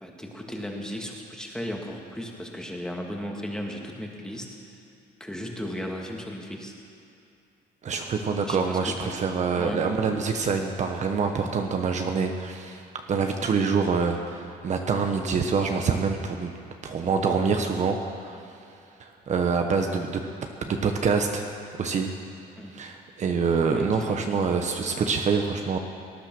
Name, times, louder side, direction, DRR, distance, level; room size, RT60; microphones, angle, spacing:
voice 1, 0.0-4.5 5.2-6.7 8.5-9.1 9.6-9.8 22.6-22.7 23.7-24.3, equal, 5° left, 0 dB, 1.9 m, -35 dB
voice 2, 7.8-12.8 13.1-16.5 16.8-18.4 19.0-20.2 20.7-21.5 21.8-22.1 22.7-25.8, right 5 dB, 45° right, 4 dB, 1.1 m, -26 dB
18.5 x 10.0 x 6.2 m, 2.7 s
cardioid pair, 110°, 17 cm